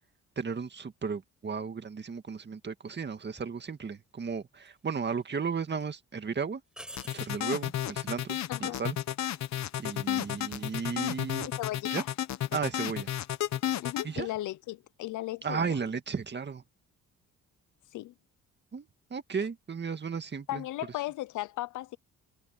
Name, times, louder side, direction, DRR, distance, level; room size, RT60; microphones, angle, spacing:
voice 1, 0.4-6.6 7.1-9.0 9.8-11.5 11.9-12.0 12.5-13.1 14.0-14.3 15.4-16.6 18.7-20.6, right 5 dB, 35° right, 2.1 m, -34 dB
sound 1, 4.6-5.3 5.7-5.8 6.7-7.4 10.5-10.9, equal, 5° right, 5.2 m, -47 dB
sound 2, 7.0-14.1, left 12 dB, 65° left, 1.0 m, -32 dB
voice 2, 11.6-12.1 13.8-15.6 17.9-18.1 20.5-22.0, left 16 dB, 85° left, 0.8 m, -36 dB
cardioid pair, 90°, 30 cm